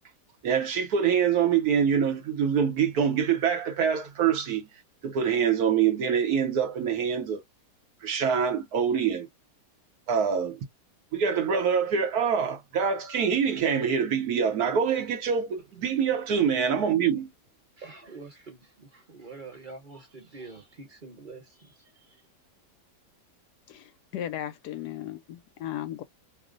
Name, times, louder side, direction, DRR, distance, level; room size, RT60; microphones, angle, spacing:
voice 1, 0.4-4.7 5.0-7.4 8.0-9.3 10.1-10.7 11.1-17.3, right 7 dB, 70° right, 1.2 m, -25 dB
voice 2, 17.8-22.2, right 3 dB, 35° right, 1.0 m, -46 dB
voice 3, 23.7-26.0, left 11 dB, 75° left, 1.1 m, -36 dB
2.9 x 2.1 x 3.8 m
omnidirectional pair, 1.8 m